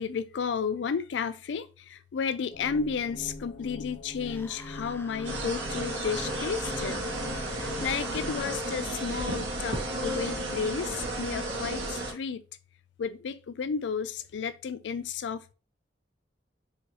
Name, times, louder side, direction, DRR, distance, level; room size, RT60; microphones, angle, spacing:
voice 1, 0.0-7.0 7.4-12.4 13.0-15.5, left 6 dB, 80° left, 0.4 m, -33 dB
sound 1, 2.5-8.5, left 2 dB, 50° left, 1.4 m, -42 dB
sound 2, 4.2-8.8, left 2 dB, 10° left, 0.4 m, -47 dB
sound 3, 5.2-12.1, right 1 dB, 85° right, 1.7 m, -33 dB
4.7 x 3.1 x 2.9 m
head